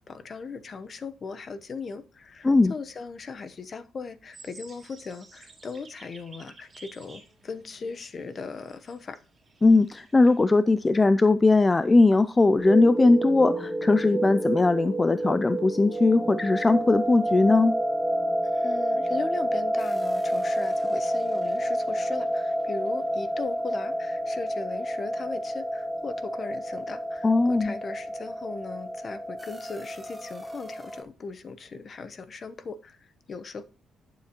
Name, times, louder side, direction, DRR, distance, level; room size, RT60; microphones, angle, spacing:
voice 1, 0.0-9.2 18.4-33.6, left 4 dB, 45° left, 0.9 m, -38 dB
sound 1, 4.3-10.4, right 4 dB, 30° right, 2.6 m, -52 dB
voice 2, 9.6-17.7 27.2-27.8, left 3 dB, 20° left, 0.4 m, -20 dB
sound 2, 12.6-31.0, right 1 dB, 10° right, 1.2 m, -29 dB
11.0 x 7.2 x 3.0 m
cardioid pair, 90°, 0 cm